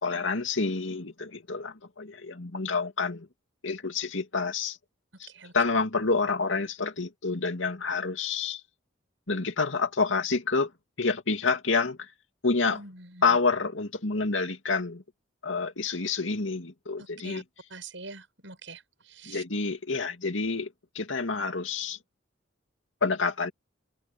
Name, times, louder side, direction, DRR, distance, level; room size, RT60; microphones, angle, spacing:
voice 1, 0.0-3.3 3.6-4.8 5.2-5.3 5.5-8.6 9.3-10.7 11.0-12.1 12.4-12.8 13.2-15.0 15.4-17.4 19.3-22.0 23.0-23.5, left 4 dB, 80° left, 2.3 m, -28 dB
voice 2, 12.7-13.4 17.0-17.4 17.7-19.4, right 3 dB, 70° right, 7.7 m, -45 dB
head